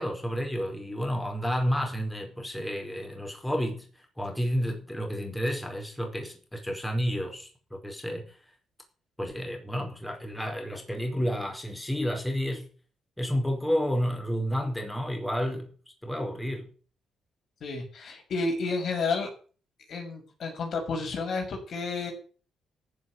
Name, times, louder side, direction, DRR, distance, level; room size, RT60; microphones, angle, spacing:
voice 1, 0.0-3.9 4.2-8.4 9.2-12.7 13.2-15.7 16.0-16.7, equal, 5° left, 4.9 m, -30 dB
voice 2, 17.6-19.3 19.9-22.1, left 4 dB, 60° left, 6.9 m, -31 dB
14.5 x 7.7 x 9.6 m
cardioid pair, 90°, 0 cm